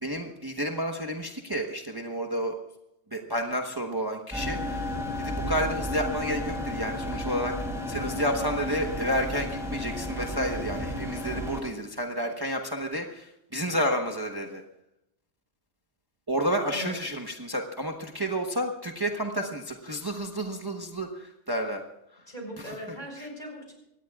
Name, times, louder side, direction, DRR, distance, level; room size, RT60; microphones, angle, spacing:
voice 1, 0.0-2.5 3.1-7.5 7.9-14.6 16.3-21.8 22.6-22.7 23.2-23.3, equal, 20° right, 2 dB, 1.1 m, -30 dB
sound 1, 4.3-11.6, left 1 dB, ahead, 5.3 m, -33 dB
voice 2, 22.3-23.7, equal, 45° left, 1 dB, 4.9 m, -39 dB
24.0 x 18.5 x 2.4 m, 0.85 s
omnidirectional pair, 1.2 m